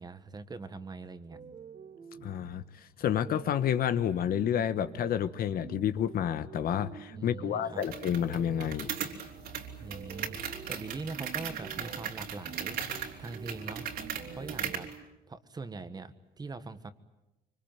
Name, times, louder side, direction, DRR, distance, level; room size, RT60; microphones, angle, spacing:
voice 1, 0.0-1.4 7.1-7.8 9.8-12.8 13.2-13.9 14.3-14.9 15.3-16.9, right 3 dB, 25° right, 11 dB, 1.5 m, -42 dB
sound 1, 1.3-15.0, right 7 dB, 45° right, 2.3 m, -49 dB
voice 2, 2.2-9.0, left 9 dB, 60° left, 12 dB, 1.2 m, -30 dB
sound 2, 7.8-14.9, right 8 dB, 65° right, 3.8 m, -38 dB
25.0 x 25.0 x 9.2 m, 0.95 s
cardioid pair, 110°, 17 cm